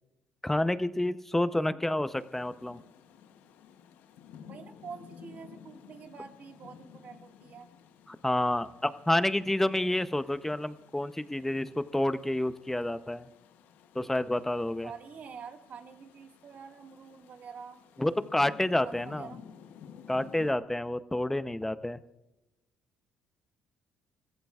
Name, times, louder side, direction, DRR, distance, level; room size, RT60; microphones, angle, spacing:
voice 1, 0.4-2.8 8.1-13.3 13.9-14.9 18.0-19.3 20.1-22.0, left 1 dB, 10° left, 13 dB, 0.7 m, -29 dB
voice 2, 1.5-1.8 4.5-7.7 14.8-17.8 18.8-19.4, right 6 dB, 55° right, 5 dB, 1.8 m, -47 dB
Rain, 2.1-20.5, left 8 dB, 80° left, 0.9 m, -54 dB
29.5 x 15.0 x 2.4 m, 0.94 s
supercardioid pair, 75°, 3 cm